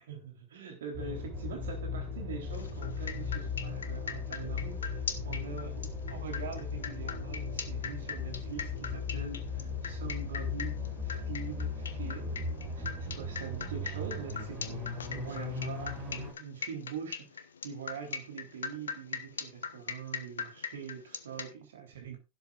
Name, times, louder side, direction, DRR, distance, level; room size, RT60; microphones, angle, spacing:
voice 1, 0.0-10.8 11.0-12.5 12.8-22.2, right 6 dB, 60° right, 3.6 m, -43 dB
sound 1, 0.9-16.3, left 4 dB, 35° right, 7.7 m, -37 dB
sound 2, 2.5-21.5, left 6 dB, 70° left, 1.2 m, -40 dB
13.5 x 12.0 x 2.5 m
figure-of-eight pair, 90°, 0 cm